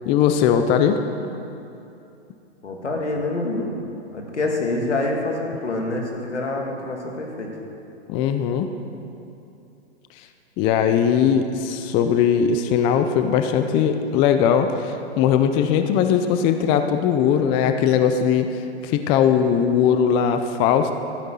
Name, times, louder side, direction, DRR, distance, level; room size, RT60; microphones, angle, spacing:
voice 1, 0.1-1.0 8.1-8.7 10.6-18.5 18.8-20.9, left 8 dB, 15° left, 8 dB, 0.4 m, -19 dB
voice 2, 2.6-3.7 4.1-7.5, left 2 dB, 90° left, 0 dB, 2.7 m, -26 dB
13.0 x 9.5 x 7.5 m, 2.8 s
hypercardioid pair, 130°, 34 cm